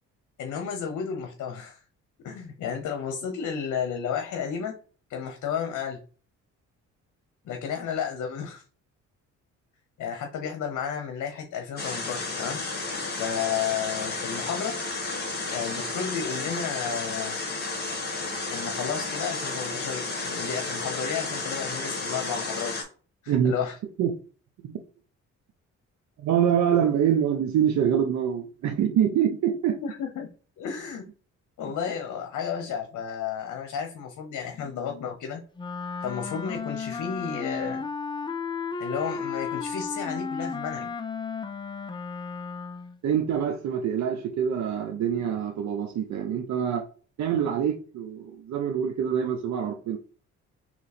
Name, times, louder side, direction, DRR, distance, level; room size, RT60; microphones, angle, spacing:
voice 1, 0.4-1.8 2.2-4.7 5.1-6.0 7.4-8.6 10.0-12.6 13.1-14.8 15.4-17.3 18.5-22.8 23.2-23.8 29.8-30.3 30.6-31.0 31.6-35.4 36.0-37.8 38.8-40.9, left 7 dB, 70° left, 0.9 m, -32 dB
sound 1, 11.8-22.8, left 3 dB, 35° left, 1.8 m, -32 dB
voice 2, 26.2-29.8 43.0-46.8 47.2-50.0, right 9 dB, 70° right, 0.7 m, -25 dB
Wind instrument woodwind instrument, 35.6-43.0, left 5 dB, 15° left, 0.4 m, -34 dB
3.8 x 3.1 x 4.1 m
cardioid pair, 90°, 30 cm